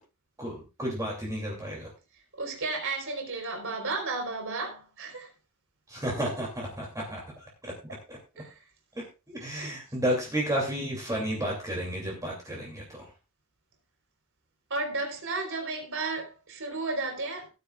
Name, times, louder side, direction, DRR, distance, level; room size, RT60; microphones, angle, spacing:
voice 1, 0.4-1.9 5.9-7.7 8.1-8.2 8.9-13.1, equal, 15° right, 2.8 m, -32 dB
voice 2, 2.4-5.3 8.4-8.6 9.6-9.7 14.7-17.5, right 3 dB, 60° right, 4.0 m, -33 dB
17.5 x 9.9 x 2.4 m
head